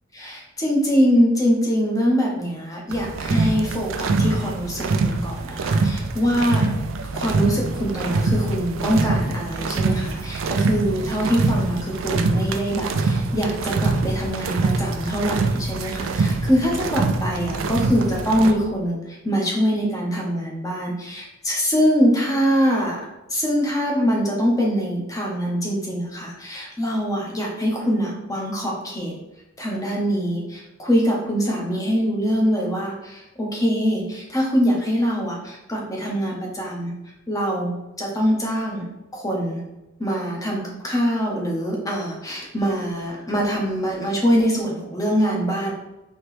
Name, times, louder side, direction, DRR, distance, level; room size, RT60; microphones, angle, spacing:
voice 1, 0.1-6.7 7.1-23.0 23.3-29.1 29.6-36.9 37.3-38.9 39.1-39.6 40.0-45.7, equal, 15° left, -2 dB, 0.9 m, -23 dB
sound 1, 2.9-18.5, right 3 dB, 70° right, 0.4 m, -24 dB
4.3 x 3.0 x 3.2 m, 1.0 s
head